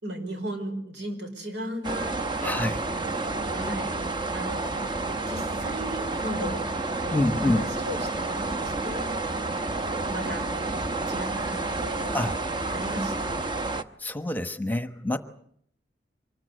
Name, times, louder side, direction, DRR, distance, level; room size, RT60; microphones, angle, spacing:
voice 1, 0.0-2.6 3.5-3.9 4.3-6.7 7.0-9.0 10.1-10.5 11.1-12.2 12.7-13.4, equal, 85° right, 6 dB, 5.1 m, -36 dB
sound 1, 1.8-13.8, right 3 dB, 25° right, 1.0 m, -30 dB
voice 2, 2.4-2.8 7.1-7.6 12.1-12.4 14.0-15.2, left 1 dB, 10° left, 10 dB, 1.1 m, -26 dB
25.0 x 20.0 x 8.0 m, 0.67 s
head